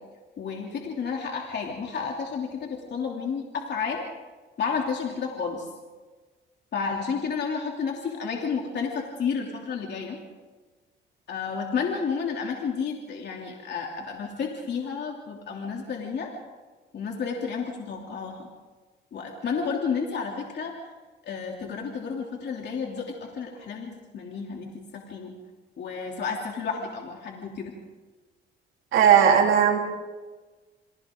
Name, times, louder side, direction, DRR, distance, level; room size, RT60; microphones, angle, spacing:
voice 1, 0.4-4.1 4.6-5.7 6.7-10.2 11.3-16.3 16.9-18.5 19.1-20.7 21.2-25.3 25.8-27.7, left 5 dB, 60° left, 0 dB, 3.1 m, -31 dB
voice 2, 28.9-29.8, right 8 dB, 80° right, -1 dB, 3.9 m, -17 dB
28.5 x 25.0 x 3.9 m, 1.3 s
cardioid pair, 90°, 20 cm